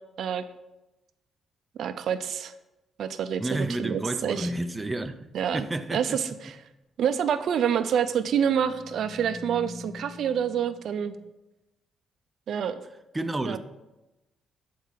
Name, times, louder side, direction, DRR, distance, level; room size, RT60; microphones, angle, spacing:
voice 1, 1.8-2.5 3.0-4.5 5.3-5.7 5.9-6.6 7.0-11.1 12.5-12.8 13.4-13.6, right 8 dB, 65° right, 0.6 m, -27 dB
voice 2, 3.4-6.2 13.1-13.6, right 2 dB, 15° right, 0.7 m, -31 dB
sound 1, 4.4-5.0 7.8-11.3, left 2 dB, 25° left, 1.0 m, -40 dB
12.0 x 4.7 x 5.8 m
cardioid pair, 90°, 0 cm